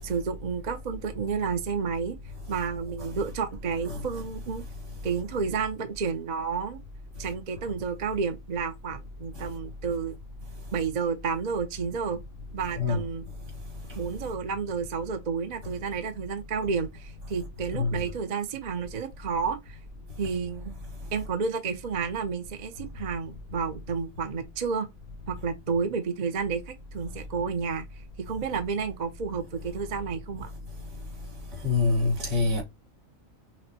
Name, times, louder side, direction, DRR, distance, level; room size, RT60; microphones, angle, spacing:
voice 1, 0.0-2.2 2.5-4.6 5.0-6.8 7.2-10.2 10.7-12.2 12.5-13.2 14.0-19.8 20.2-20.7 21.1-24.9 25.3-27.9 28.2-30.5, right 5 dB, 45° right, 0.6 m, -31 dB
voice 2, 31.6-32.6, left 4 dB, 65° right, 2.1 m, -24 dB
5.9 x 2.1 x 2.8 m
omnidirectional pair, 1.4 m